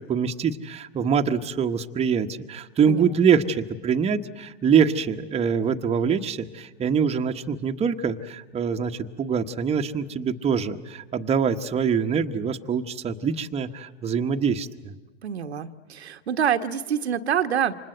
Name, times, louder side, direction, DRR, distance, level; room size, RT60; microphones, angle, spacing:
voice 1, 0.0-14.9, right 6 dB, 20° right, 5 dB, 1.2 m, -24 dB
voice 2, 15.2-17.8, right 8 dB, 85° right, 7 dB, 1.3 m, -26 dB
28.5 x 25.5 x 8.0 m, 1.2 s
hypercardioid pair, 110°, 31 cm